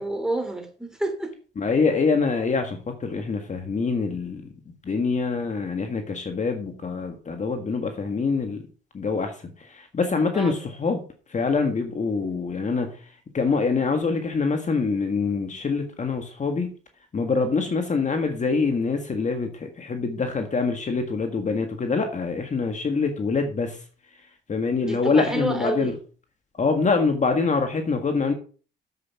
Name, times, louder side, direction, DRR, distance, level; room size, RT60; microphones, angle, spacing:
voice 1, 0.0-1.3 10.3-10.7 24.8-26.0, right 2 dB, 5° right, 3.1 m, -29 dB
voice 2, 1.6-8.6 8.9-11.0 11.3-12.9 13.3-16.7 17.1-23.8 24.5-25.9 26.6-28.3, left 4 dB, 35° left, 1.7 m, -25 dB
8.1 x 7.7 x 5.9 m
cardioid pair, 90°, 20 cm